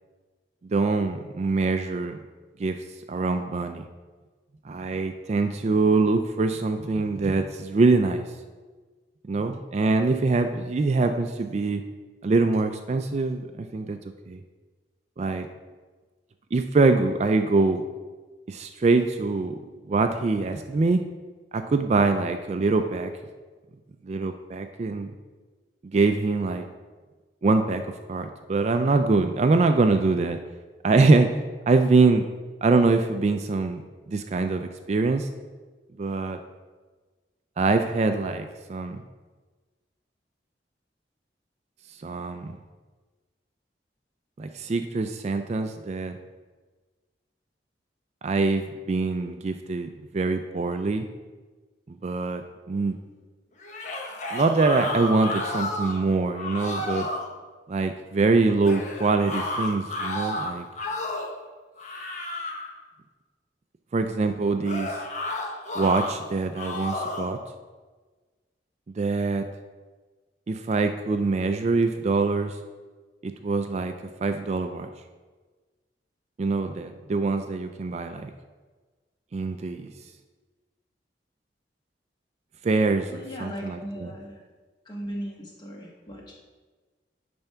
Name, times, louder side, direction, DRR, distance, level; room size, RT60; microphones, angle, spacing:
voice 1, 0.6-2.2 2.6-2.8 3.1-3.8 4.7-8.3 9.3-11.8 12.2-14.0 14.3-14.4 15.2-15.5 16.5-17.8 18.5-19.6 19.9-21.0 21.5-23.1 24.0-25.1 25.8-26.6 27.4-27.8 28.1-30.4 30.8-31.3 31.7-32.2 32.6-33.8 34.1-35.3 36.0-36.4 37.6-39.0 42.0-42.5 44.4-46.2 48.2-49.9 50.1-51.1 51.9-53.0 54.3-57.1 57.7-60.7 63.9-64.9 65.7-67.4 69.0-69.4 70.5-72.5 73.2-73.9 74.2-74.9 76.4-78.3 79.3-79.9 82.6-84.1, right 3 dB, 40° right, 7 dB, 0.3 m, -24 dB
sound 1, 53.6-56.0 56.3-57.3 58.6-61.4 61.8-62.7 64.6-66.1 66.6-67.3, left 1 dB, 45° left, 0.9 m, -32 dB
voice 2, 83.1-84.4 84.8-86.3, equal, 25° left, -1 dB, 1.3 m, -37 dB
8.8 x 3.5 x 5.6 m, 1.3 s
head